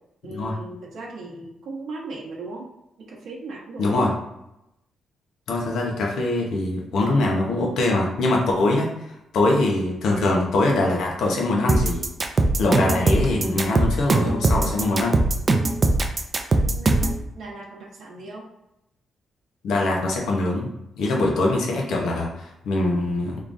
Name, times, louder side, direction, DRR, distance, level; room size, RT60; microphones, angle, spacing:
voice 1, 0.2-2.6 3.1-4.1 9.4-9.6 14.1-15.1 16.5-18.4, right 2 dB, 75° right, -3 dB, 0.9 m, -37 dB
voice 2, 3.8-4.1 5.5-8.9 9.3-12.1 12.6-15.1 19.6-20.7 21.0-23.4, left 2 dB, 80° left, -1 dB, 0.9 m, -23 dB
sound 1, 11.7-17.2, right 2 dB, 35° right, 0.4 m, -20 dB
3.7 x 3.2 x 2.6 m, 0.87 s
cardioid pair, 110°, 0 cm